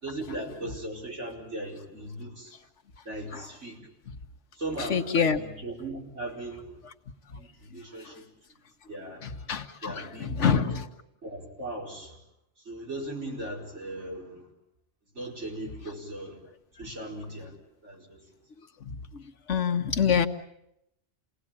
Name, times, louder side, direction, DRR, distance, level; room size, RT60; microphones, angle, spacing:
voice 1, 0.0-2.5 3.1-3.8 4.6-6.7 7.4-8.2 8.9-9.2 9.8-10.7 11.2-12.2 12.7-14.4 15.2-16.4 16.8-17.5 17.8-18.2, right 1 dB, 75° right, -2 dB, 5.2 m, -38 dB
voice 2, 4.9-5.4 9.2-10.8 19.5-20.3, left 7 dB, 75° left, 7 dB, 1.5 m, -25 dB
28.5 x 18.5 x 8.8 m, 0.81 s
omnidirectional pair, 1.2 m